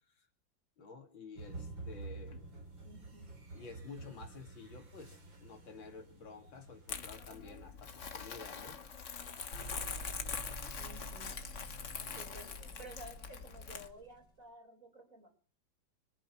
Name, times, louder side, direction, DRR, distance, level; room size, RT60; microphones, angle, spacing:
voice 1, 0.8-2.4 3.5-8.8, left 4 dB, 90° left, 4 dB, 3.0 m, -51 dB
sound 1, 1.4-8.4, right 3 dB, 80° right, 4.2 m, -50 dB
voice 2, 2.8-3.3 10.7-11.3 12.1-12.5 12.8-15.3, right 1 dB, 45° right, 2 dB, 5.2 m, -53 dB
Crumpling crinkling, 6.9-13.9, left 6 dB, 45° left, 1.4 m, -44 dB
sound 2, 9.5-14.3, equal, 70° left, 4.3 m, -48 dB
25.5 x 9.4 x 5.9 m, 0.43 s
omnidirectional pair, 2.1 m